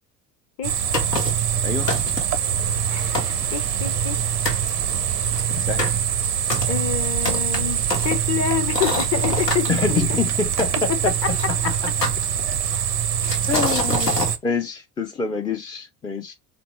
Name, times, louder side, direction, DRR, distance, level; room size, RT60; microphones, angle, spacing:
sound 1, 0.6-14.4, right 9 dB, 80° right, 0.7 m, -24 dB
sound 2, 0.9-1.5 1.9-2.4 2.9-3.0 3.1-4.2 4.4-4.7 5.2-9.7 10.6-11.5 12.0-12.7 13.2-14.3, left 2 dB, 85° left, 1.2 m, -27 dB
voice 1, 1.6-1.9 5.6-6.0 9.7-11.9 13.5-16.3, left 5 dB, 10° left, 0.4 m, -26 dB
voice 2, 2.9-4.2 6.7-10.0 10.9-11.3 11.6-11.8, left 9 dB, 35° left, 0.8 m, -27 dB
3.9 x 2.9 x 3.0 m
figure-of-eight pair, 65°, 47 cm